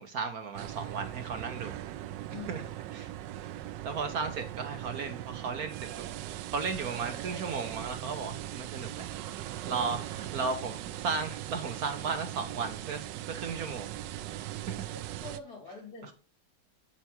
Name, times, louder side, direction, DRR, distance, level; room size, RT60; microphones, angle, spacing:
voice 1, 0.0-1.8 2.5-2.6 2.9-3.1 3.8-5.8 6.2-9.1 9.7-13.9 14.7-14.8 16.0-16.1, right 5 dB, 60° right, 7 dB, 1.4 m, -35 dB
sound 1, 0.5-15.4, right 13 dB, 80° right, 1.2 m, -40 dB
voice 2, 2.3-2.7 9.6-9.9 14.9-16.1, left 4 dB, 55° left, -1 dB, 3.9 m, -45 dB
7.6 x 5.9 x 4.4 m, 0.34 s
omnidirectional pair, 1.9 m